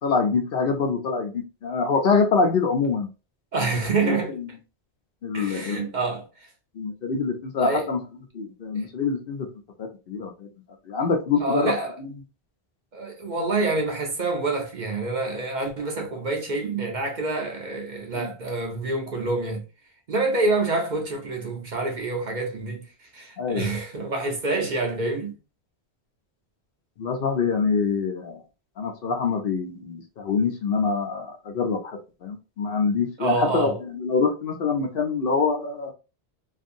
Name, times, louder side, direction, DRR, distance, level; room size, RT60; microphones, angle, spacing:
voice 1, 0.0-3.1 4.0-4.5 5.2-6.0 6.8-8.0 8.3-9.5 9.8-10.5 10.9-11.7 12.0-12.1 18.1-18.3 23.4-23.7 27.0-28.4 28.8-35.9, left 4 dB, 65° left, 0.8 m, -25 dB
voice 2, 3.5-4.3 5.3-6.5 7.6-7.9 8.8-8.9 11.4-12.0 12.9-19.6 20.1-25.3 33.2-33.8, right 3 dB, 50° right, 0.7 m, -27 dB
2.6 x 2.6 x 2.5 m
omnidirectional pair, 1.1 m